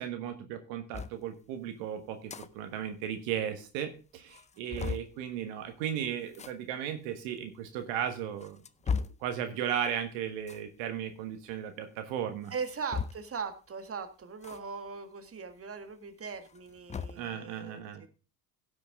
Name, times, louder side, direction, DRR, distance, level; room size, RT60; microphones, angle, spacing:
voice 1, 0.0-8.6 8.9-12.5 17.1-18.0, right 9 dB, 65° right, 7 dB, 1.5 m, -36 dB
sound 1, 0.9-1.2 2.1-2.5 2.8-2.9 3.1-3.2 3.8-3.9 4.3-5.1 6.3-6.5 7.4-7.5 8.2-9.3 10.4-10.7 12.4-13.4 14.4-14.6 15.0-15.1 16.3-17.3, left 5 dB, 15° left, 0.5 m, -37 dB
voice 2, 12.5-18.1, right 5 dB, 30° right, 8 dB, 1.8 m, -40 dB
17.0 x 6.0 x 3.6 m, 0.34 s
hypercardioid pair, 65°, 48 cm